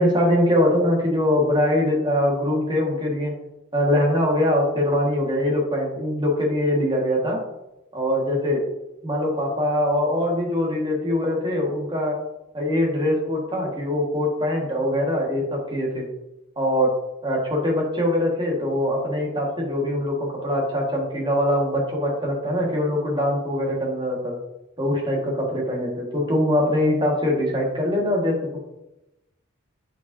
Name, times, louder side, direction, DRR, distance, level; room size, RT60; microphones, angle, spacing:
voice 1, 0.0-3.3 3.7-7.4 7.9-8.6 9.0-12.2 12.5-16.0 16.6-16.9 17.2-24.3 24.8-28.6, left 1 dB, 20° right, -2 dB, 1.6 m, -22 dB
7.9 x 5.6 x 2.7 m, 0.91 s
head